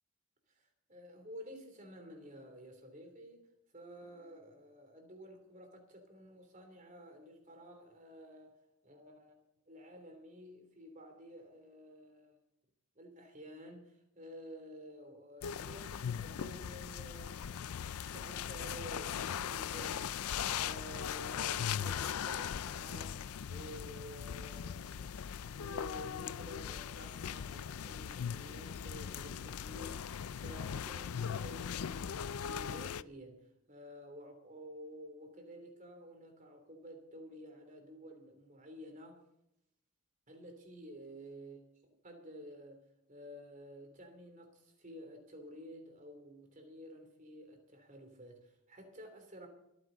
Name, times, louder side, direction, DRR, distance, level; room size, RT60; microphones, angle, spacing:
voice 1, 0.5-3.5 3.7-8.6 8.8-9.4 9.7-12.4 12.9-20.2 20.6-30.0 30.4-39.2 40.3-41.6 42.0-49.5, equal, 35° right, 3.3 m, -51 dB
sound 1, 15.4-33.0, left 8 dB, 75° left, 0.4 m, -39 dB
27.0 x 9.7 x 4.0 m
head